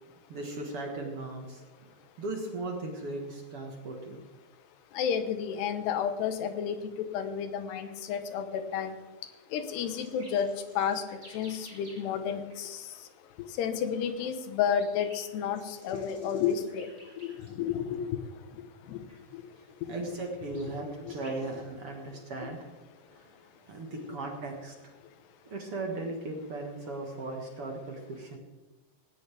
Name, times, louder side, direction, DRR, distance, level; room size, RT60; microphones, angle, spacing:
voice 1, 0.3-1.6 2.2-4.2 19.9-22.7 23.1-23.3 23.6-24.9 25.5-28.4, right 2 dB, 50° right, 2 dB, 1.8 m, -37 dB
voice 2, 4.9-9.0 9.5-12.9 13.6-16.9 17.2-18.2 18.9-19.0 19.3-19.4 19.8-20.0 21.1-21.2 24.0-24.1, left 8 dB, 80° left, 8 dB, 3.2 m, -31 dB
sound 1, 7.8-8.0 9.1-12.2 12.5-12.7 13.9-17.7 18.0-18.2 19.1-19.2 19.9-21.6, equal, 15° right, 5.4 m, -55 dB
19.0 x 17.5 x 3.5 m, 1.2 s
omnidirectional pair, 4.7 m